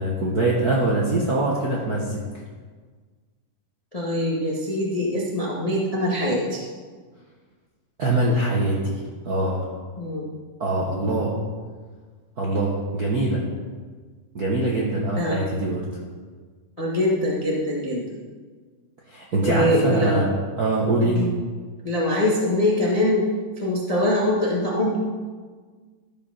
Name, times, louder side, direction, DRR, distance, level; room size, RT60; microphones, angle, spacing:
voice 1, 0.0-2.2 8.0-9.7 10.6-11.3 12.4-13.4 14.3-15.8 19.1-20.3 20.6-21.2, right 2 dB, 55° right, -3 dB, 1.0 m, -23 dB
voice 2, 3.9-6.6 10.0-10.3 15.2-15.4 16.8-18.0 19.4-20.2 21.0-21.3 21.8-23.2 23.6-25.0, left 1 dB, 25° left, -4 dB, 0.7 m, -23 dB
13.5 x 5.4 x 5.8 m, 1.5 s
omnidirectional pair, 3.4 m